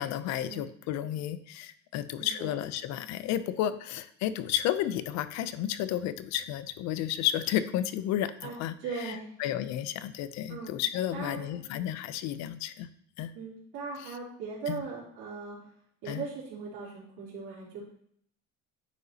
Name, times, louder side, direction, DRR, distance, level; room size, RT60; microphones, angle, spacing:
voice 1, 0.0-12.9 13.2-13.3 14.0-14.2 14.7-14.9 16.1-16.3, left 11 dB, 65° left, 13 dB, 0.6 m, -32 dB
voice 2, 2.2-2.5 8.4-8.5 8.8-9.3 10.5-10.7 11.1-11.6 13.3-15.6 16.0-17.9, right 5 dB, 85° right, -8 dB, 3.2 m, -39 dB
9.1 x 5.5 x 2.8 m, 0.67 s
cardioid pair, 150°, 29 cm